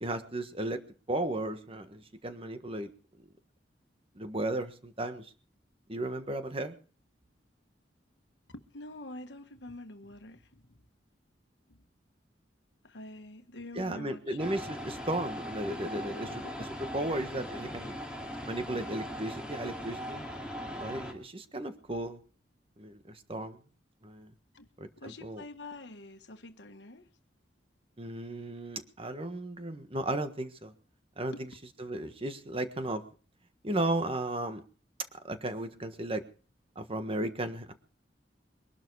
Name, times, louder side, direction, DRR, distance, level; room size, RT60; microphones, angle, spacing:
voice 1, 0.0-0.8 1.1-2.9 4.1-5.3 5.9-6.8 13.7-16.3 16.9-18.0 18.5-20.3 20.8-22.2 22.8-23.6 24.0-24.3 24.8-25.4 28.0-30.7 31.2-31.3 31.8-33.0 33.6-34.6 35.2-36.2 36.7-37.7, right 1 dB, 30° right, 1.5 m, -35 dB
voice 2, 8.5-10.8 11.7-11.8 12.8-14.4 15.8-16.5 17.5-17.6 24.5-24.7 25.0-27.1 31.3-31.4, left 2 dB, 70° left, 1.4 m, -46 dB
sound 1, 14.4-21.1, equal, 5° right, 2.5 m, -39 dB
23.0 x 12.0 x 4.8 m
head